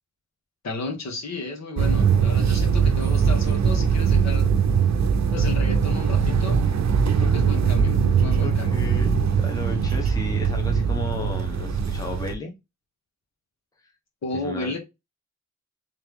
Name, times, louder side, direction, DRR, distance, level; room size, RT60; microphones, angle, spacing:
voice 1, 0.6-4.5 5.3-6.6 7.2-8.8 14.2-14.8, left 2 dB, 60° left, 1.3 m, -33 dB
sound 1, 1.8-12.3, right 6 dB, 60° right, 0.6 m, -21 dB
voice 2, 8.4-12.5 14.3-14.8, left 2 dB, 10° left, 0.8 m, -34 dB
3.4 x 3.1 x 3.5 m
wide cardioid pair, 115°, 31 cm